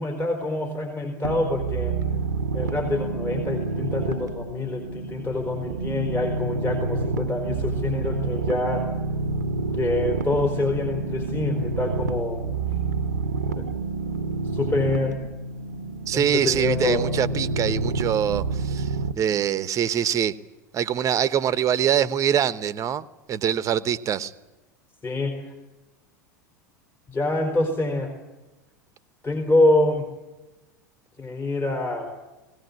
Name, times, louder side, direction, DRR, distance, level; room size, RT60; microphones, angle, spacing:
voice 1, 0.0-2.0 2.5-8.9 9.7-12.4 13.6-13.7 14.5-15.2 16.1-17.0 25.0-25.3 27.1-28.1 29.2-30.1 31.2-32.1, left 2 dB, 25° left, 4.5 m, -25 dB
sound 1, 1.2-19.1, right 3 dB, 85° right, 1.0 m, -28 dB
voice 2, 16.1-20.3 20.7-24.3, right 9 dB, 35° right, 1.1 m, -24 dB
20.5 x 18.0 x 9.7 m
hypercardioid pair, 85°, 10 cm